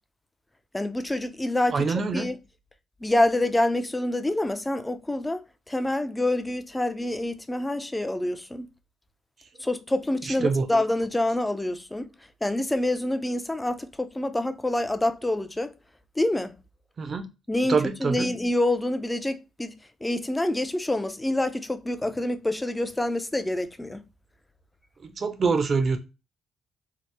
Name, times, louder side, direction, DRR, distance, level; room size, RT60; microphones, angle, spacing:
voice 1, 0.7-1.9 2.1-2.4 3.0-8.7 9.6-12.1 12.4-15.7 16.2-16.5 17.5-19.7 20.0-24.0, left 1 dB, 10° left, 0.4 m, -27 dB
voice 2, 1.7-2.3 10.3-10.7 17.0-17.3 17.7-18.3 25.0-26.0, right 4 dB, 45° right, 0.6 m, -25 dB
2.9 x 2.0 x 3.2 m
cardioid pair, 90°, 0 cm